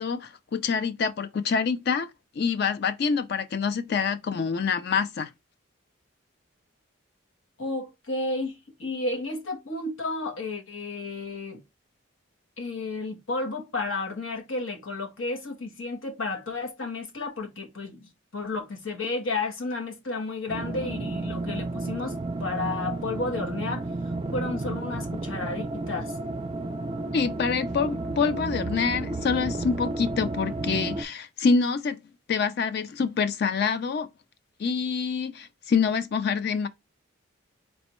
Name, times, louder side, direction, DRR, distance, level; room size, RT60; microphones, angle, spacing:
voice 1, 0.0-2.1 2.4-5.3 27.1-32.0 32.3-34.1 34.6-36.7, left 5 dB, 50° left, 0.3 m, -26 dB
voice 2, 7.6-11.6 12.6-23.8 24.3-26.1, left 3 dB, 75° left, 1.2 m, -32 dB
sound 1, 20.5-31.0, right 2 dB, 25° right, 0.3 m, -32 dB
4.3 x 3.1 x 3.0 m
head